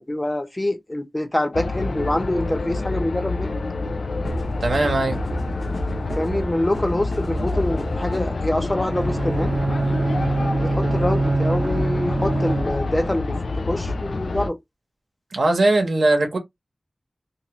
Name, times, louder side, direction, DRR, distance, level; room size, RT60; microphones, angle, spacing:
voice 1, 0.0-3.5 6.2-9.5 10.6-13.4 13.7-14.6, left 1 dB, 20° left, 0.6 m, -25 dB
sound 1, 1.5-14.5, left 3 dB, 90° left, 0.3 m, -27 dB
sound 2, 4.2-8.4, equal, 55° left, 0.7 m, -32 dB
voice 2, 4.6-5.2 15.3-16.4, right 2 dB, 85° right, 0.9 m, -19 dB
Bowed string instrument, 8.9-13.1, right 3 dB, 70° right, 0.4 m, -24 dB
2.6 x 2.5 x 2.9 m
wide cardioid pair, 65°, 0 cm